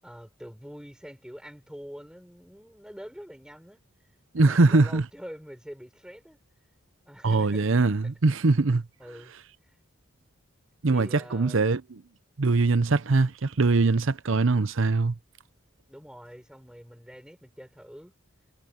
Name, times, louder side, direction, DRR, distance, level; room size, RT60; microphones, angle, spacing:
voice 1, 0.0-3.8 4.3-6.4 7.1-7.6 9.0-9.3 10.2-10.3 10.9-11.7 15.9-18.1, equal, 5° right, 6.3 m, -45 dB
voice 2, 4.3-5.0 7.2-8.8 10.8-11.8 12.4-15.1, right 3 dB, 65° right, 0.7 m, -22 dB
head